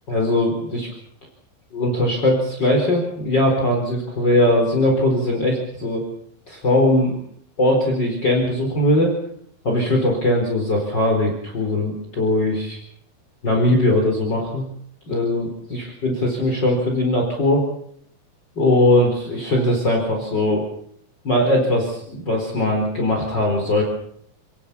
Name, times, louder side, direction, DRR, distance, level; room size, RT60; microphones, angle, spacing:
voice 1, 0.1-0.9 1.7-6.0 6.5-7.2 7.6-9.1 9.6-12.8 13.4-14.6 15.1-17.6 18.6-20.6 21.2-23.8, left 1 dB, 30° left, 1 dB, 4.9 m, -20 dB
29.5 x 18.5 x 7.0 m, 0.65 s
omnidirectional pair, 3.8 m